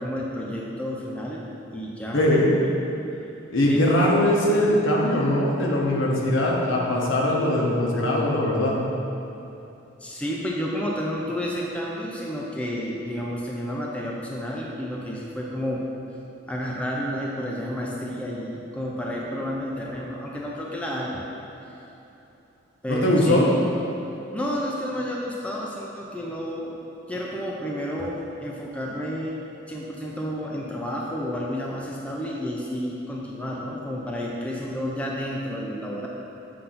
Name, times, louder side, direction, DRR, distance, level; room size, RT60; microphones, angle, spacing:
voice 1, 0.0-1.5 1.7-2.2 3.1-3.3 3.7-4.1 10.0-15.8 16.5-21.3 21.7-21.8 22.8-23.6 24.3-26.8 27.1-29.4 29.7-36.1, equal, 5° left, -3 dB, 0.5 m, -30 dB
voice 2, 2.1-2.5 3.5-8.7 22.9-23.5, left 1 dB, 75° left, -3 dB, 1.0 m, -21 dB
7.6 x 2.7 x 5.6 m, 3.0 s
head